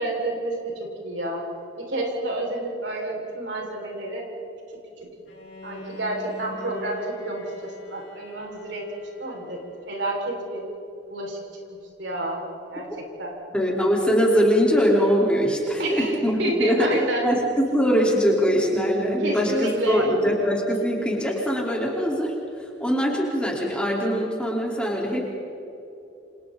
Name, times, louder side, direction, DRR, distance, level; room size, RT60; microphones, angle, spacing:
voice 1, 0.0-1.5 1.8-4.3 5.6-8.9 9.2-9.6 9.9-10.7 11.1-11.4 11.7-12.4 12.7-13.4 15.8-17.3 19.2-20.1, right 1 dB, 80° right, -1 dB, 6.2 m, -29 dB
Bowed string instrument, 5.3-10.3, left 1 dB, 70° left, 4.9 m, -43 dB
voice 2, 13.5-16.9 17.2-22.3 22.8-25.2, equal, 5° left, -3 dB, 4.6 m, -22 dB
29.0 x 28.0 x 4.3 m, 2.9 s
head